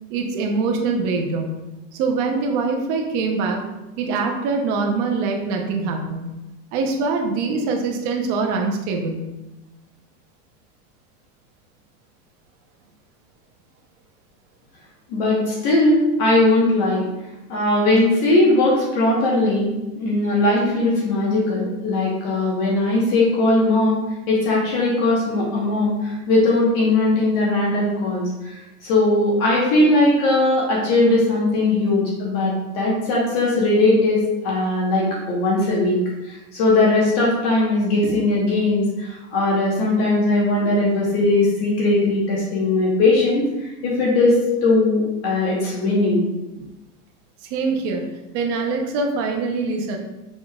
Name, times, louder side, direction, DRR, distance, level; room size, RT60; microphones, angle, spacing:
voice 1, 0.1-1.5 1.9-3.6 4.0-6.3 6.7-9.3 47.4-48.0 48.3-50.0, right 4 dB, 35° right, 2 dB, 0.6 m, -23 dB
voice 2, 15.1-17.0 17.5-24.0 24.3-28.5 28.8-44.3 44.6-46.2, left 2 dB, 40° left, -4 dB, 1.2 m, -19 dB
5.1 x 3.6 x 2.3 m, 1.0 s
supercardioid pair, 150°, 45 cm